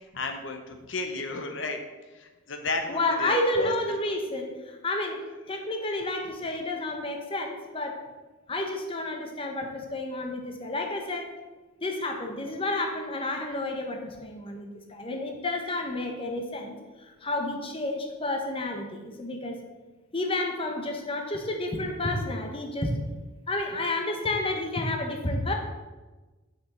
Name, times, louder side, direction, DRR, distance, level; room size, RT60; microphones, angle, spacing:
voice 1, 0.1-1.8 2.1-3.7 4.1-4.2, left 3 dB, 65° left, 5 dB, 0.8 m, -33 dB
voice 2, 2.9-5.2 5.5-8.0 8.5-11.3 11.8-19.6 20.1-23.0 23.5-25.5, left 2 dB, 25° left, 3 dB, 1.0 m, -30 dB
7.3 x 5.7 x 6.2 m, 1.2 s
head